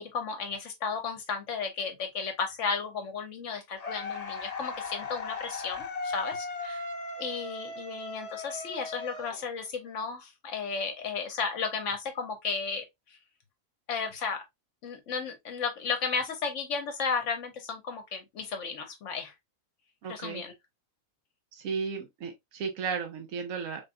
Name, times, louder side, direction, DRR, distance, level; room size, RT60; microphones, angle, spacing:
voice 1, 0.0-6.8 7.2-13.2 13.9-14.4 14.8-19.3 20.1-20.5, left 5 dB, 65° left, 1.0 m, -34 dB
sound 1, 3.8-9.9, left 3 dB, 40° left, 0.6 m, -37 dB
voice 2, 20.0-20.4 21.5-23.9, right 5 dB, 75° right, 1.2 m, -34 dB
3.9 x 3.4 x 2.3 m
omnidirectional pair, 1.4 m